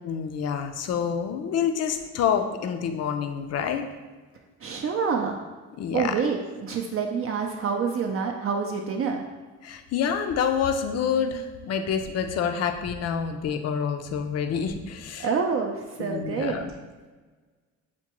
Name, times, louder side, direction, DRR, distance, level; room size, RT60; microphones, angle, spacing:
voice 1, 0.0-3.9 5.8-6.2 9.6-15.3 16.0-16.7, left 7 dB, 55° left, 6 dB, 0.5 m, -27 dB
voice 2, 4.6-5.4 5.9-9.2 15.2-16.8, right 5 dB, 45° right, 2 dB, 0.4 m, -27 dB
5.8 x 2.2 x 2.9 m, 1.3 s
cardioid pair, 90°, 30 cm